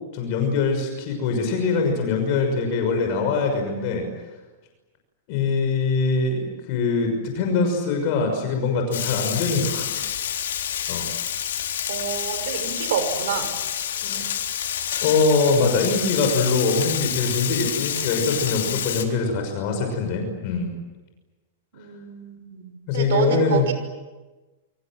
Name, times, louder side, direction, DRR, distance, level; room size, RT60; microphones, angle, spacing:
voice 1, 0.1-4.1 5.3-10.1 10.9-11.1 13.9-14.3 15.0-20.7 22.9-23.7, left 4 dB, 45° left, 3 dB, 6.3 m, -23 dB
Frying (food), 8.9-19.0, left 10 dB, 85° left, 3.9 m, -28 dB
voice 2, 11.9-13.5 21.7-23.7, right 8 dB, 70° right, 8 dB, 6.0 m, -28 dB
29.0 x 25.5 x 7.7 m, 1.2 s
supercardioid pair, 155°, 0 cm